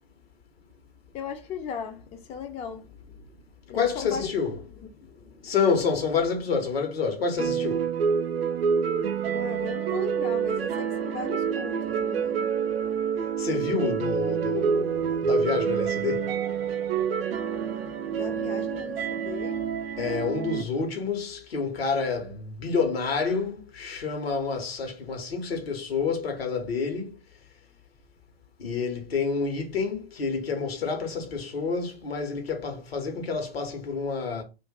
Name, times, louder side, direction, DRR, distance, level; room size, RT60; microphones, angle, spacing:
voice 1, 1.1-3.3 3.7-4.3 4.7-5.5 9.3-12.5 18.0-19.8 20.2-20.3, left 6 dB, 20° left, 0.4 m, -38 dB
voice 2, 3.7-4.5 5.4-7.9 13.4-17.0 18.1-18.2 19.9-27.2 28.6-34.4, left 5 dB, 70° left, 1.1 m, -28 dB
sound 1, 7.4-20.6, right 7 dB, 70° right, 0.6 m, -27 dB
2.5 x 2.5 x 3.6 m
figure-of-eight pair, 90°, 31 cm